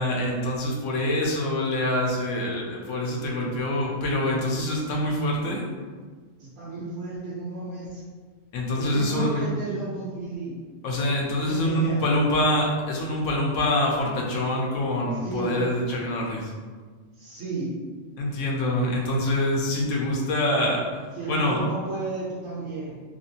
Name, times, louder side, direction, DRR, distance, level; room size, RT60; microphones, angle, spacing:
voice 1, 0.0-5.6 8.5-9.5 10.8-16.5 18.2-20.8 21.3-21.6, left 1 dB, 70° left, -2 dB, 1.0 m, -25 dB
voice 2, 6.4-8.0 8.7-10.5 11.2-12.0 15.2-15.6 17.2-17.8 21.1-22.9, right 3 dB, 85° right, -10 dB, 1.2 m, -32 dB
3.1 x 2.6 x 2.7 m, 1.5 s
omnidirectional pair, 1.4 m